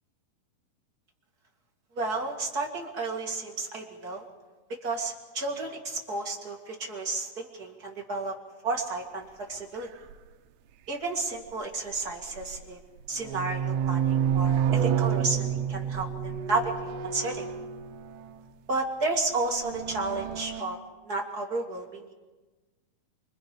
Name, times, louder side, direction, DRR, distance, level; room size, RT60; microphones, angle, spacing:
voice 1, 1.9-4.3 4.8-8.3 8.6-9.9 10.9-12.8 13.1-17.5 18.7-20.8 21.0-22.1, right 3 dB, 35° right, 0 dB, 1.8 m, -32 dB
sound 1, 10.1-10.2 11.9-12.6 13.0-18.5 19.3-20.6, right 8 dB, 85° right, 2.9 m, -29 dB
26.0 x 24.5 x 5.2 m, 1.2 s
omnidirectional pair, 4.6 m